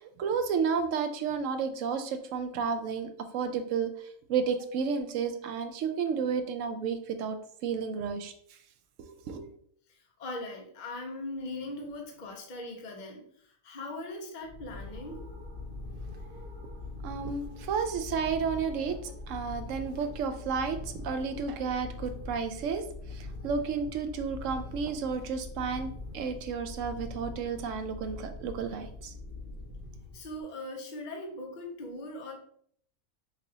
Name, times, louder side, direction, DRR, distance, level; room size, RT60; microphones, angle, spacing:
voice 1, 0.0-8.3 9.0-9.5 17.0-29.1, right 6 dB, 70° right, 8 dB, 0.9 m, -32 dB
voice 2, 9.9-15.2 30.1-32.3, left 2 dB, 40° left, 1 dB, 0.9 m, -40 dB
sound 1, 14.4-30.4, left 2 dB, 10° right, 1.1 m, -42 dB
6.5 x 2.5 x 2.7 m, 0.64 s
omnidirectional pair, 1.5 m